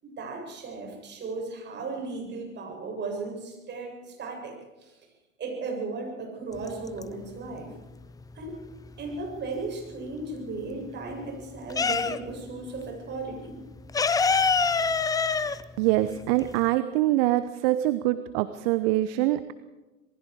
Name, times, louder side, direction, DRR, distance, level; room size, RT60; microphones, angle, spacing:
voice 1, 0.0-4.5 4.8-5.0 5.4-7.7 8.3-8.6 9.0-13.6, right 3 dB, 25° right, 1 dB, 7.8 m, -36 dB
sound 1, 6.6-7.5 7.8-9.7 10.1-12.5 12.8-12.9 13.2-16.8, left 5 dB, 10° left, 0.6 m, -26 dB
voice 2, 15.8-19.5, right 15 dB, 45° right, 13 dB, 1.0 m, -24 dB
27.5 x 20.0 x 4.9 m, 1.1 s
figure-of-eight pair, 95°, 40 cm